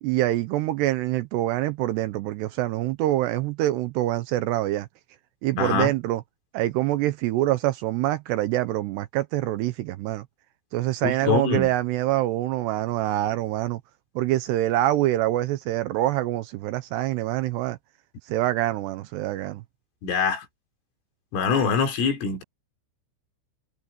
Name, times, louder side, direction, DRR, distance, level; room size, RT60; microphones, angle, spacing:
voice 1, 0.0-4.9 5.4-6.2 6.5-10.3 10.7-13.8 14.2-17.8 18.3-19.6, right 15 dB, 85° right, 2.5 m, -25 dB
voice 2, 5.6-5.9 11.0-11.7 20.0-20.5 21.3-22.4, left 5 dB, 85° left, 6.6 m, -24 dB
omnidirectional pair, 5.6 m